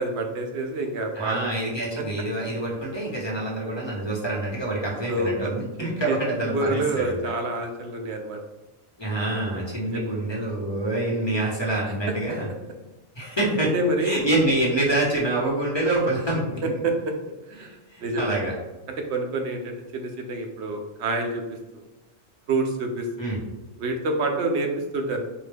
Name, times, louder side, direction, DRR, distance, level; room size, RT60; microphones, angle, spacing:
voice 1, 0.0-1.4 5.1-5.5 5.8-6.2 6.5-8.4 9.8-10.1 13.7-14.2 16.6-16.9 17.5-18.4 19.1-21.4 21.7-21.8 22.5-23.1 23.8-25.3, right 2 dB, 75° right, 4 dB, 0.9 m, -27 dB
voice 2, 1.2-7.2 9.0-12.5 13.2-13.7 14.0-16.6 17.9-18.5 23.2-23.4, right 2 dB, 25° left, -4 dB, 0.8 m, -26 dB
4.7 x 2.1 x 3.4 m, 1.1 s
omnidirectional pair, 1.2 m